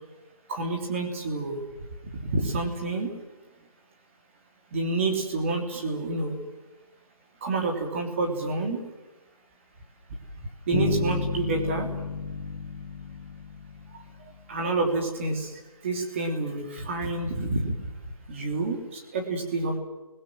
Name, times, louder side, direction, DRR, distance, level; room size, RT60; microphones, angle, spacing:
voice 1, 0.5-1.6 2.1-3.1 4.7-6.3 7.4-8.8 10.7-11.9 14.5-15.5 15.8-17.7 18.3-18.8 19.1-19.8, right 3 dB, 20° right, 3 dB, 3.2 m, -28 dB
sound 1, 10.7-14.4, left 4 dB, ahead, 7.7 m, -31 dB
28.5 x 21.0 x 7.8 m, 1.1 s
figure-of-eight pair, 170°, 19 cm